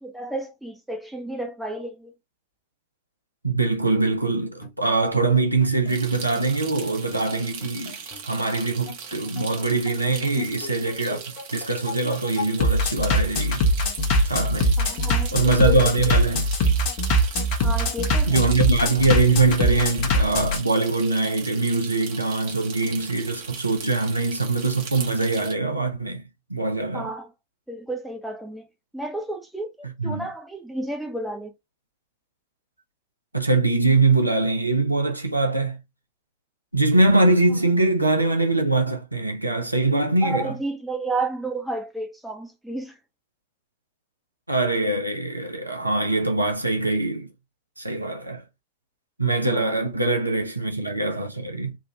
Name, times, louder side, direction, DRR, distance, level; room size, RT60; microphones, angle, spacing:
voice 1, 0.0-2.1 14.8-15.9 17.6-18.4 26.9-27.3 27.7-28.7 28.9-31.5 40.2-43.0 49.4-49.8, right 1 dB, ahead, 0.8 m, -31 dB
voice 2, 3.4-7.9 8.2-13.6 14.2-14.7 15.3-16.5 18.3-26.2 26.5-27.1 30.0-30.3 33.3-35.8 36.7-40.5 44.5-47.3 47.8-48.4 49.2-51.7, right 3 dB, 85° right, 0.8 m, -23 dB
Bass drum, 4.6-20.6, equal, 45° left, 1.0 m, -23 dB
sound 1, 5.9-25.5, right 6 dB, 50° right, 0.8 m, -39 dB
3.6 x 2.5 x 3.0 m
figure-of-eight pair, 90°, 0 cm